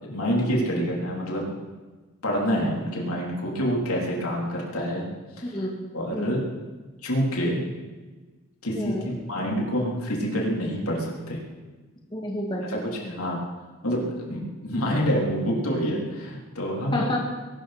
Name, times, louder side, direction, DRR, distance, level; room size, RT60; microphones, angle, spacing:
voice 1, 0.0-1.4 2.2-5.1 5.4-5.6 5.9-6.4 7.0-7.6 8.6-11.4 12.7-13.4 13.8-17.0, equal, 90° left, -2 dB, 3.8 m, -27 dB
voice 2, 8.7-9.1 12.1-13.1 16.9-17.2, left 1 dB, 20° left, -1 dB, 2.2 m, -30 dB
21.5 x 12.5 x 4.4 m, 1.3 s
head